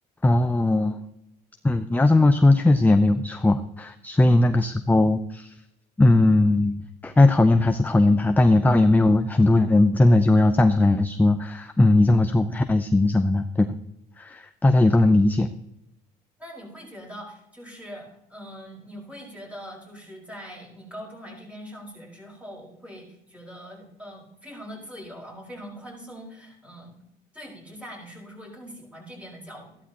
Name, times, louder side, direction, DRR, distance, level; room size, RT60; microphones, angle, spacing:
voice 1, 0.2-1.0 1.6-5.5 6.0-13.8 14.2-15.5, left 2 dB, 10° left, 8 dB, 0.6 m, -19 dB
voice 2, 16.4-27.0 27.3-29.8, equal, 5° right, -2 dB, 5.1 m, -42 dB
14.0 x 12.5 x 3.0 m, 0.81 s
cardioid pair, 110°, 17 cm